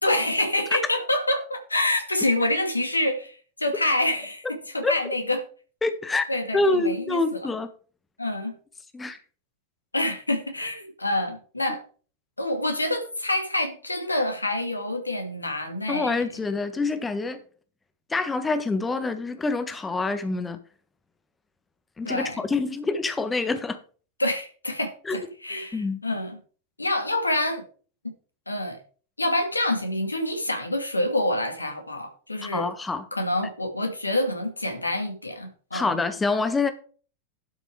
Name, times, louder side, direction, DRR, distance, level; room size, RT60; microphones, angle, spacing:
voice 1, 0.0-5.5 6.3-7.5 8.2-8.5 9.9-11.8 12.4-16.3 22.0-22.4 24.2-26.4 26.8-27.6 28.0-28.1 28.5-28.8 29.2-32.7 33.1-36.0, left 1 dB, 80° left, 2.3 m, -27 dB
voice 2, 5.8-6.3 6.5-7.7 8.9-9.2 15.9-17.4 18.1-20.6 22.0-23.8 25.1-25.2 25.7-26.0 32.5-33.1 35.7-36.7, left 3 dB, 15° left, 1.5 m, -26 dB
12.0 x 5.8 x 4.8 m
figure-of-eight pair, 90°, 0 cm